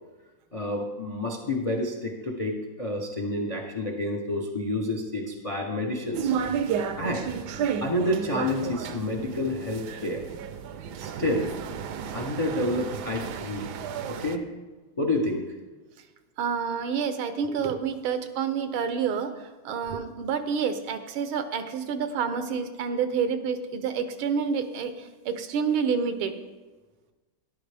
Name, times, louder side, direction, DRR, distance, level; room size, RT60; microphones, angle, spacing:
voice 1, 0.5-6.3 7.0-7.3 7.8-10.3 11.0-11.5 12.1-13.8 14.1-14.4 15.0-15.4, left 1 dB, 60° left, 2 dB, 0.3 m, -29 dB
sound 1, 6.1-14.4, right 7 dB, 70° right, 1.0 m, -32 dB
voice 2, 16.4-19.3 19.7-26.3, right 6 dB, 85° right, 9 dB, 1.7 m, -28 dB
13.0 x 11.0 x 3.4 m, 1.2 s
omnidirectional pair, 2.2 m